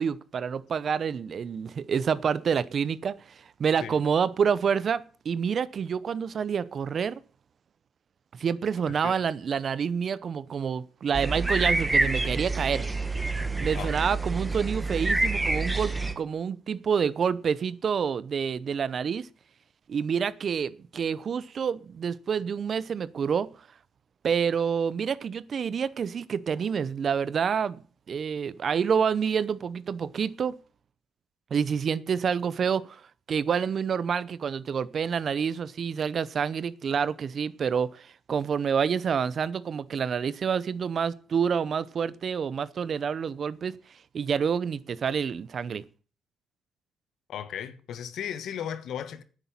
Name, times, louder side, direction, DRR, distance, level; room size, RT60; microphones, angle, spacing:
voice 1, 0.0-7.2 8.3-12.9 13.5-19.3 19.9-23.5 24.2-27.8 28.1-30.6 31.5-33.0 33.3-43.7 44.1-45.8, right 7 dB, 50° right, 0.8 m, -28 dB
sound 1, 11.1-16.1, right 2 dB, 15° right, 1.8 m, -27 dB
voice 2, 47.3-49.2, left 9 dB, 75° left, 1.4 m, -35 dB
10.0 x 8.3 x 8.8 m
cardioid pair, 90°, 0 cm